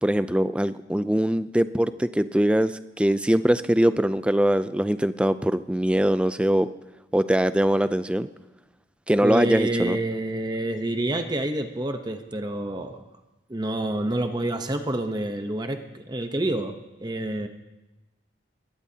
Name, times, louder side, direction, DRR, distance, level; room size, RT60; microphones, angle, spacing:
voice 1, 0.0-6.7 7.1-8.3 9.1-10.0, right 1 dB, 5° right, 12 dB, 0.4 m, -22 dB
voice 2, 9.2-13.0 13.5-17.5, right 1 dB, 20° right, 6 dB, 0.8 m, -28 dB
21.0 x 18.5 x 2.8 m, 1.0 s
head